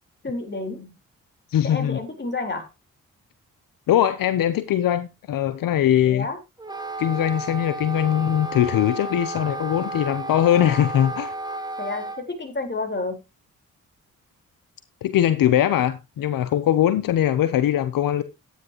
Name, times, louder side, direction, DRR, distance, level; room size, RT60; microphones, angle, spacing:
voice 1, 0.2-1.0 1.6-2.7 6.1-6.4 11.8-13.2, left 3 dB, 30° left, 3.9 m, -30 dB
voice 2, 1.5-2.0 3.9-6.3 7.0-11.3 15.0-18.2, left 11 dB, 75° left, 0.8 m, -21 dB
Wind instrument woodwind instrument, 6.6-12.2, right 2 dB, 10° right, 2.0 m, -32 dB
12.5 x 9.8 x 3.0 m
supercardioid pair, 50°, 34 cm